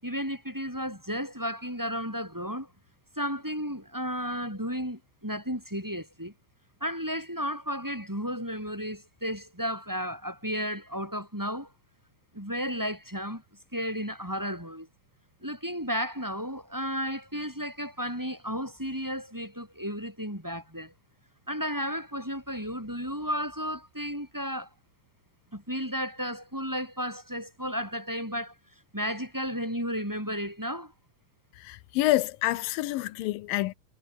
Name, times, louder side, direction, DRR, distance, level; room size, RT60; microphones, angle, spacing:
voice 1, 0.0-2.7 3.2-6.3 6.8-11.7 12.3-13.4 13.7-14.9 15.4-20.9 21.5-24.7 25.5-28.5 28.9-30.9, equal, 5° right, 6.8 m, -33 dB
voice 2, 31.7-33.7, left 16 dB, 85° left, 2.6 m, -27 dB
omnidirectional pair, 4.0 m